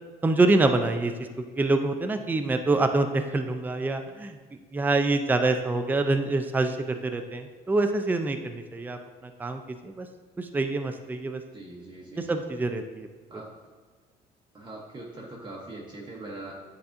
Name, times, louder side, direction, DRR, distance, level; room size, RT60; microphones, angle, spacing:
voice 1, 0.2-1.1 1.6-4.4 4.7-10.1 10.4-11.4 12.3-13.1, right 2 dB, 10° right, 7 dB, 0.4 m, -26 dB
voice 2, 11.5-12.4 13.3-13.5 14.5-16.5, right 2 dB, 25° right, -3 dB, 1.0 m, -41 dB
9.4 x 4.1 x 2.6 m, 1.5 s
cardioid pair, 110°, 17 cm